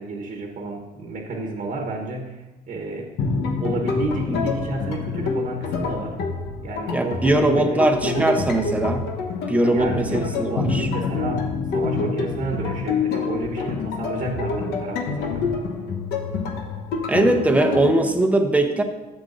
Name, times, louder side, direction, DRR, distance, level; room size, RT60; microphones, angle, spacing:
voice 1, 0.0-3.1 3.6-6.2 6.6-8.4 9.6-15.4, right 2 dB, 50° right, 2 dB, 1.2 m, -31 dB
sound 1, 3.2-18.0, left 4 dB, 75° left, 1.1 m, -27 dB
voice 2, 6.9-9.0 9.5-10.9 17.1-18.8, right 1 dB, 10° right, 4 dB, 0.8 m, -20 dB
11.5 x 7.9 x 2.6 m, 1.1 s
cardioid pair, 110°, 17 cm